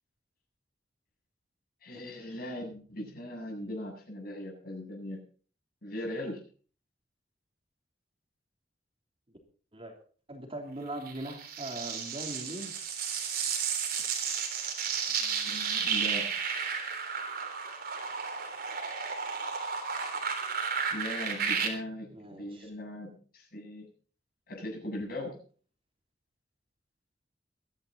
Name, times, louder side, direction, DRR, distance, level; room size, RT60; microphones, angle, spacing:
voice 1, 1.8-5.2 5.8-6.4 15.1-16.3 20.9-23.9 24.5-25.4, left 1 dB, 55° left, 1 dB, 7.6 m, -39 dB
voice 2, 10.3-12.7 22.1-22.7, right 1 dB, 30° right, 2 dB, 3.2 m, -40 dB
sound 1, 11.1-21.7, right 6 dB, 55° right, 3.4 m, -33 dB
23.0 x 10.5 x 4.0 m, 0.41 s
head